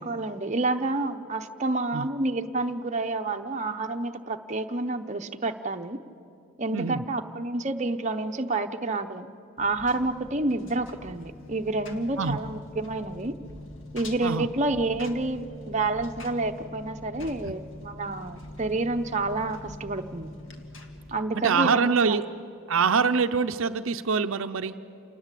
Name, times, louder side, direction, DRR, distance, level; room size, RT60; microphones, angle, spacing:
voice 1, 0.0-6.0 6.6-9.3 9.6-13.3 13.9-20.3 21.1-22.2, right 2 dB, 35° right, 5 dB, 0.8 m, -29 dB
voice 2, 6.7-7.0 12.2-12.4 14.2-14.5 17.4-17.5 21.3-22.2 22.7-24.8, right 5 dB, 70° right, 9 dB, 0.6 m, -24 dB
Engine, 9.6-21.2, left 1 dB, 60° left, 2.0 m, -44 dB
28.0 x 19.5 x 8.3 m, 2.6 s
head